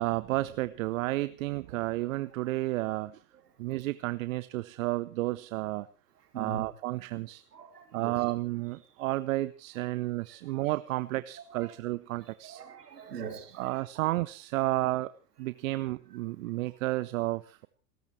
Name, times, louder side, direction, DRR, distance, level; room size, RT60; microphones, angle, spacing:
voice 1, 0.0-3.2 3.6-5.9 6.3-7.4 7.9-12.6 13.1-13.2 13.6-15.1 15.4-17.7, right 18 dB, 55° right, 0.8 m, -32 dB
voice 2, 7.5-8.3 9.8-9.9 10.3-10.6 11.5-11.7 12.4-13.7, right 6 dB, 75° right, 3.1 m, -42 dB
29.5 x 13.5 x 3.2 m
figure-of-eight pair, 85°, 47 cm